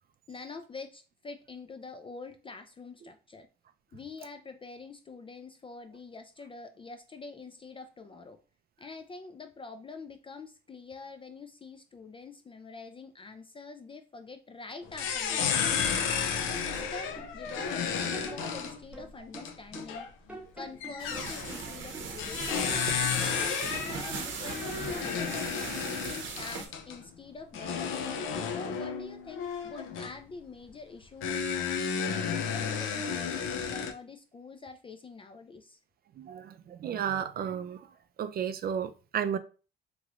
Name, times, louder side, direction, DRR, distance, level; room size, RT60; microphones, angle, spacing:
voice 1, 0.3-3.5 3.9-8.4 8.8-15.8 16.4-20.1 20.5-22.7 23.2-31.4 32.0-35.8, left 4 dB, 25° left, 0.3 m, -46 dB
sound 1, 14.8-20.1 20.8-21.6 22.2-27.0 27.5-30.2 31.2-33.9, left 7 dB, 90° left, 0.5 m, -32 dB
sound 2, 16.7-17.8 18.1-20.0 20.3-22.1 22.5-24.4 24.7-25.5, right 1 dB, 5° right, 0.9 m, -45 dB
sound 3, 21.0-26.7, right 5 dB, 75° right, 0.8 m, -38 dB
voice 2, 36.2-37.9 38.2-39.4, right 8 dB, 50° right, 0.4 m, -33 dB
3.0 x 2.5 x 2.9 m
cardioid pair, 90°, 20 cm